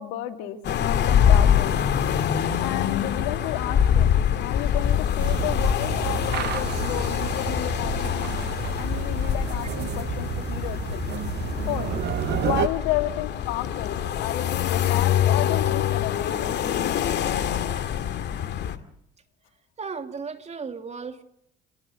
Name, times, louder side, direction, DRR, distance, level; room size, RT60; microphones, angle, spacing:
voice 1, 0.0-1.8 2.6-8.5 8.8-11.0 11.7-11.9 12.3-16.6, left 14 dB, 80° left, 7 dB, 2.7 m, -32 dB
sound 1, 0.6-18.8, left 9 dB, 60° left, 2.3 m, -24 dB
sound 2, 5.2-12.7, right 12 dB, 60° right, 1.0 m, -30 dB
voice 2, 19.8-21.2, right 5 dB, 35° right, 7 dB, 3.0 m, -35 dB
28.5 x 16.5 x 9.5 m, 0.74 s
supercardioid pair, 75°, 20 cm